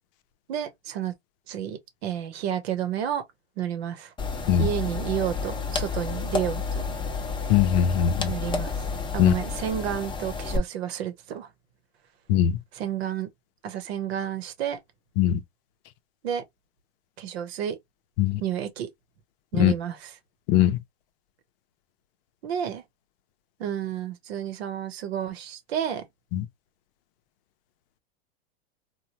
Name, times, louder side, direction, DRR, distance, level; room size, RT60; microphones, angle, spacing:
voice 1, 0.5-1.1 1.5-3.2 3.6-4.1 4.6-6.9 8.3-8.9 9.1-11.5 12.7-13.3 13.6-14.8 16.2-16.4 17.2-17.8 18.4-18.9 19.5-20.2 22.4-22.8 23.6-26.0, right 10 dB, 80° right, 0.9 m, -31 dB
sound 1, 4.2-10.6, left 4 dB, 15° left, 0.6 m, -30 dB
voice 2, 7.5-8.3 9.2-9.3 12.3-12.5 15.2-15.4 18.2-18.4 19.6-19.7 20.5-20.8 26.3-26.4, left 10 dB, 60° left, 0.6 m, -20 dB
3.0 x 2.2 x 2.7 m
supercardioid pair, 120°, 31 cm